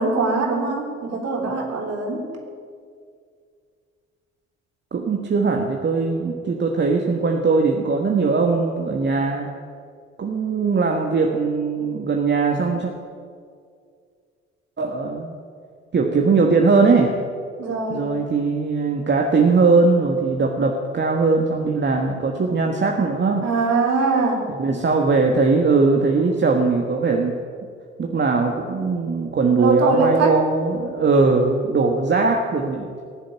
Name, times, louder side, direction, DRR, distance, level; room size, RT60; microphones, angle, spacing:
voice 1, 0.0-2.3 17.6-18.2 23.4-24.4 29.6-30.4, right 3 dB, 50° right, 1 dB, 3.6 m, -22 dB
voice 2, 4.9-9.5 10.2-12.9 14.8-15.3 15.9-17.2 17.9-23.5 24.6-27.4 28.0-33.0, right 4 dB, 30° right, 2 dB, 1.6 m, -20 dB
18.5 x 7.5 x 9.2 m, 2.2 s
figure-of-eight pair, 50°, 33 cm